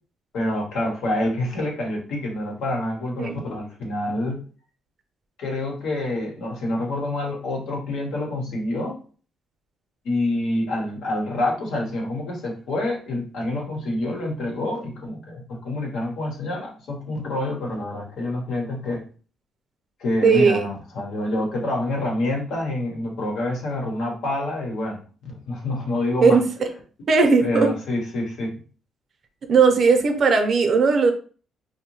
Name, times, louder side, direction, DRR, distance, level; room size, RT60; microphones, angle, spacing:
voice 1, 0.3-4.4 5.4-9.0 10.0-19.1 20.0-26.4 27.4-28.6, left 1 dB, 80° left, 0 dB, 0.9 m, -27 dB
voice 2, 20.2-20.7 26.2-26.4 27.1-27.7 29.5-31.1, right 5 dB, 55° right, 6 dB, 0.6 m, -17 dB
2.6 x 2.1 x 3.0 m, 0.39 s
cardioid pair, 90°, 0 cm